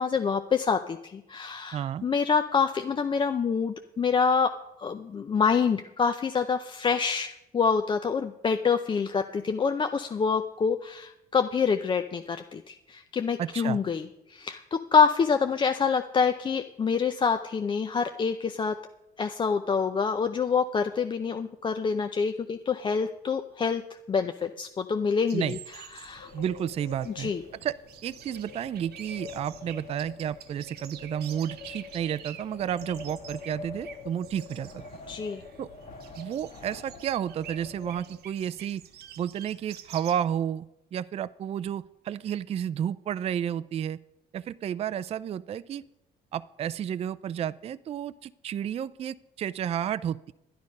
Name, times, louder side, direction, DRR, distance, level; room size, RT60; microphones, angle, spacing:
voice 1, 0.0-4.5 4.8-18.8 19.2-23.8 24.1-25.6 25.9-26.3 27.1-27.4 35.1-35.4, left 6 dB, 30° left, 7 dB, 0.5 m, -26 dB
voice 2, 1.7-2.0 13.4-13.8 25.3-25.6 26.3-27.3 27.6-27.8 28.0-34.8 35.6-35.7 36.2-38.8 39.2-40.7 40.9-44.0 44.3-45.8 46.3-50.3, right 9 dB, 35° right, 15 dB, 0.4 m, -31 dB
sound 1, 25.3-40.1, right 9 dB, 70° right, 1.0 m, -48 dB
Wind, 25.9-38.5, left 4 dB, 50° left, 1.9 m, -46 dB
11.0 x 10.5 x 5.3 m, 0.89 s
cardioid pair, 110°, 17 cm